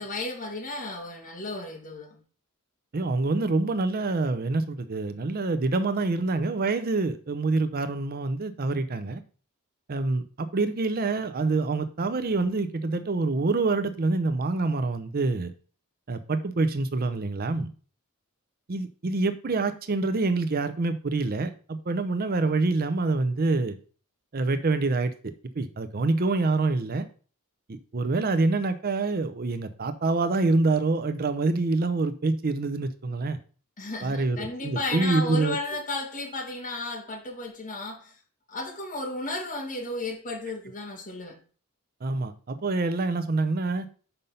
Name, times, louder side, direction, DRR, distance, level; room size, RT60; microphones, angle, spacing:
voice 1, 0.0-2.2 33.8-38.2 38.5-41.4, left 2 dB, 35° left, 1 dB, 1.8 m, -34 dB
voice 2, 2.9-9.2 9.9-15.5 16.1-17.7 18.7-23.8 24.3-27.1 27.7-33.4 34.0-35.6 42.0-43.9, right 3 dB, 45° right, 11 dB, 0.5 m, -26 dB
5.6 x 5.3 x 5.4 m, 0.40 s
head